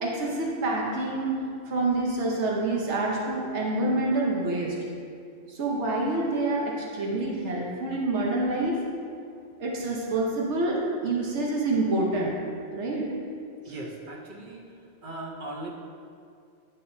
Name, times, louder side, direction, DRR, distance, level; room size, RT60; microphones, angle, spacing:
voice 1, 0.0-4.7 5.5-8.8 9.6-12.3 12.7-13.1, right 2 dB, 90° right, -3 dB, 1.3 m, -27 dB
voice 2, 13.6-14.7 15.0-15.7, right 2 dB, 50° right, -1 dB, 1.0 m, -38 dB
9.7 x 5.7 x 2.7 m, 2.3 s
omnidirectional pair, 1.1 m